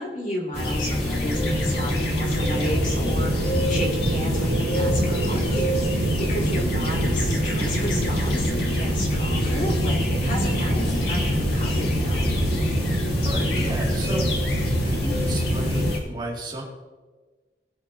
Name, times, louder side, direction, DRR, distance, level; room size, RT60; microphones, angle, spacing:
voice 1, 0.0-12.3, equal, 45° left, -2 dB, 2.5 m, -32 dB
sound 1, 0.5-16.0, left 1 dB, 65° left, 2.5 m, -25 dB
sound 2, 1.0-15.9, right 3 dB, 75° right, 0.7 m, -29 dB
voice 2, 4.3-4.6 13.2-14.5 14.8-16.6, right 1 dB, 25° right, -3 dB, 2.4 m, -33 dB
20.5 x 8.1 x 2.8 m, 1.3 s
head